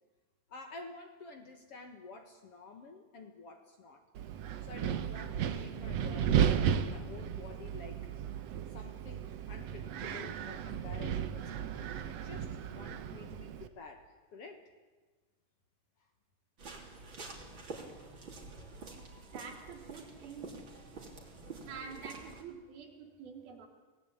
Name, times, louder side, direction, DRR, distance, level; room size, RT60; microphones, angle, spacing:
voice 1, 0.5-4.0 4.6-8.1 8.7-14.6, left 4 dB, 50° left, 5 dB, 2.1 m, -50 dB
Wind, 4.2-13.7, right 9 dB, 65° right, 1.7 m, -34 dB
sound 1, 16.6-22.4, right 3 dB, 35° right, 3.4 m, -48 dB
voice 2, 19.3-20.8 21.7-23.7, right 5 dB, 80° right, 3 dB, 4.8 m, -47 dB
25.5 x 18.5 x 8.7 m, 1.3 s
omnidirectional pair, 4.2 m